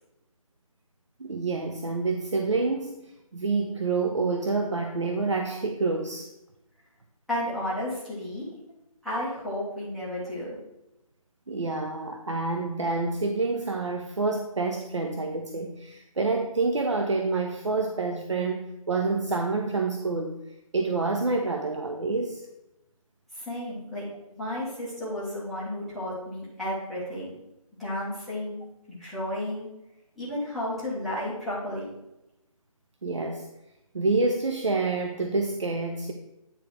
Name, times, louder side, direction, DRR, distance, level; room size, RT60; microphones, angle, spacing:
voice 1, 1.2-6.3 11.5-20.3 20.7-22.4 33.0-33.5 33.9-36.1, right 3 dB, 55° right, 4 dB, 0.6 m, -28 dB
voice 2, 7.3-8.5 9.0-10.6 23.3-27.3 27.8-29.7 30.2-31.9, left 1 dB, ahead, -13 dB, 0.6 m, -33 dB
9.1 x 3.8 x 4.5 m, 0.92 s
figure-of-eight pair, 155°, 19 cm